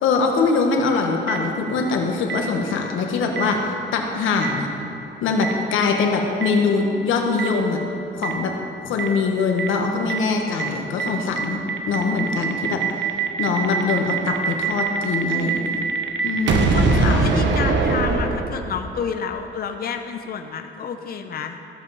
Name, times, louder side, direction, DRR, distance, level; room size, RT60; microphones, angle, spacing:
voice 1, 0.0-4.7 5.2-7.8 8.2-8.5 8.8-11.6 11.9-12.8 13.4-15.8 16.2-17.5, left 4 dB, 85° left, 2 dB, 1.3 m, -22 dB
Boom, 1.3-1.4 2.3-2.4 3.4-3.5 4.4-4.5 5.4-5.5 6.4-6.5 7.4-7.5 8.2-8.3 9.0-9.1 9.6-9.7 10.1-10.2 10.6-10.7 11.0-11.1 11.4-18.9, right 5 dB, 65° right, 1.0 m, -22 dB
voice 2, 16.7-21.6, left 6 dB, 50° left, 6 dB, 0.7 m, -29 dB
14.5 x 7.4 x 4.1 m, 2.7 s
cardioid pair, 90°, 20 cm